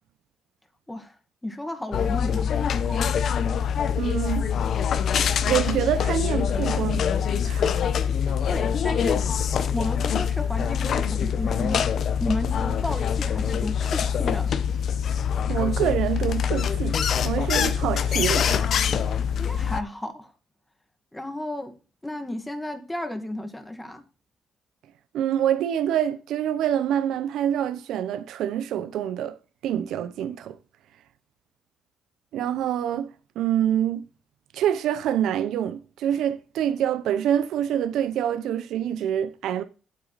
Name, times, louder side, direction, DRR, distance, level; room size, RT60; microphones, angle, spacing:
voice 1, 1.4-3.1 8.5-9.2 9.7-11.9 12.2-14.5 19.4-20.3 21.1-21.7 22.0-24.0, left 1 dB, 10° left, 2.0 m, -33 dB
sound 1, 1.9-19.8, left 7 dB, 65° left, 0.9 m, -24 dB
voice 2, 4.0-4.5 5.4-7.0 7.4-7.7 15.5-18.9 25.1-29.4 29.6-30.6 32.3-34.0 34.5-39.6, right 10 dB, 80° right, 0.7 m, -26 dB
8.8 x 8.5 x 4.1 m
cardioid pair, 90°, 0 cm